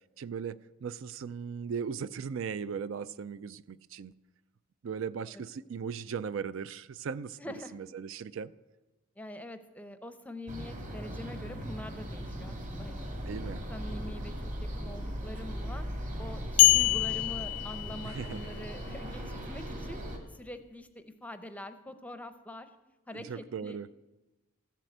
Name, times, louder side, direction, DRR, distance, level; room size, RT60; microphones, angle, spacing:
voice 1, 0.2-4.1 4.8-7.4 7.7-8.5 13.3-13.6 18.0-18.4 23.1-23.9, right 6 dB, 60° right, 17 dB, 0.4 m, -38 dB
voice 2, 7.4-7.8 9.2-13.0 13.7-14.5 14.8-15.9 16.2-20.0 20.3-22.7 23.1-24.0, left 1 dB, 5° left, 9 dB, 0.6 m, -44 dB
sound 1, 10.5-20.2, equal, 35° right, 1.9 m, -38 dB
sound 2, 16.6-18.4, left 19 dB, 70° left, 0.3 m, -25 dB
14.5 x 7.5 x 7.9 m, 1.1 s
head